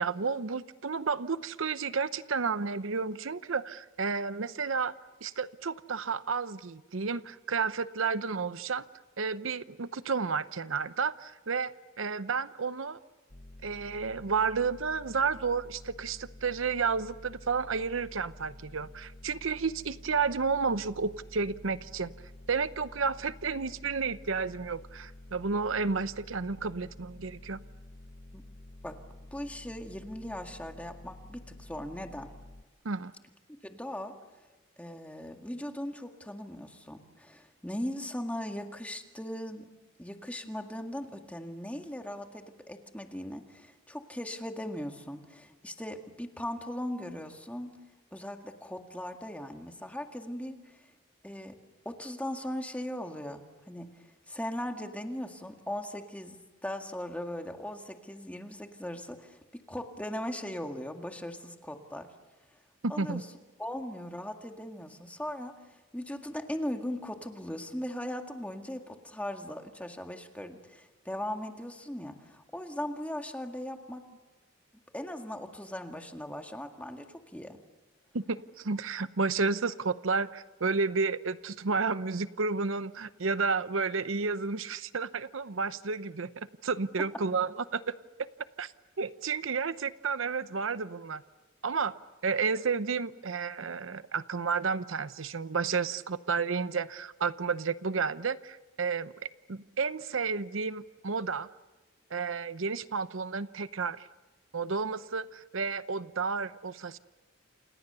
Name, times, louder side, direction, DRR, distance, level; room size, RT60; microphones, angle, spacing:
voice 1, 0.0-4.9 5.2-8.9 9.2-13.0 13.6-22.1 22.5-27.6 32.8-33.1 62.8-63.2 78.1-87.8 88.2-88.3 88.6-88.7 89.0-91.2 91.6-91.9 92.2-99.1 99.5-101.5 102.1-104.1 104.5-107.0, right 5 dB, 75° right, 14 dB, 0.8 m, -31 dB
sound 1, 13.3-32.6, left 1 dB, 35° left, 1.1 m, -50 dB
voice 2, 29.3-32.3 33.6-34.1 34.8-39.7 40.0-47.7 48.1-50.8 51.2-51.6 51.9-56.4 56.6-62.1 62.9-63.3 63.6-74.0 74.9-77.6, left 1 dB, 5° left, 4 dB, 1.9 m, -39 dB
28.5 x 28.5 x 6.9 m, 1.2 s
head